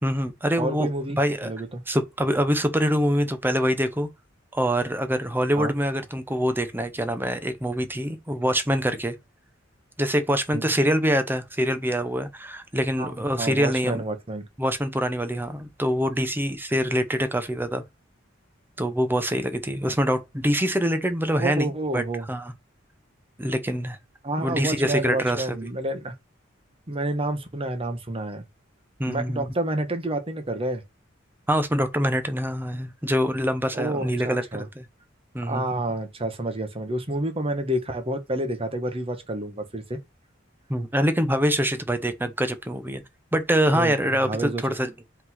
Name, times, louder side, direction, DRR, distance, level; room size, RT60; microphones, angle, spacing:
voice 1, 0.0-0.9 1.2-1.5 1.9-4.1 4.5-9.2 10.0-14.0 14.6-17.8 18.8-22.5 23.4-24.0 24.4-25.6 29.0-29.5 31.5-34.9 35.3-35.8 40.7-43.0 43.3-44.9, equal, 10° right, 0.8 m, -25 dB
voice 2, 0.6-1.8 5.6-5.7 10.5-10.6 13.0-14.4 21.4-22.3 24.2-26.1 26.9-28.4 29.1-30.8 33.7-34.7 35.4-40.0 43.7-43.9 44.2-44.6, right 1 dB, 30° right, 1.2 m, -29 dB
5.2 x 4.0 x 5.6 m
head